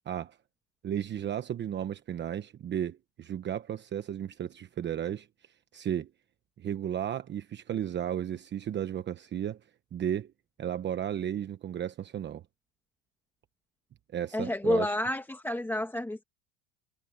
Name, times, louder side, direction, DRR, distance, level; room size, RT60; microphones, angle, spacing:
voice 1, 0.1-0.4 0.8-5.3 5.7-6.1 6.6-9.6 9.9-10.3 10.6-12.4 14.1-14.9, right 10 dB, 30° right, 1.0 m, -34 dB
voice 2, 14.3-16.2, left 1 dB, 5° left, 1.9 m, -29 dB
supercardioid pair, 135°, 39 cm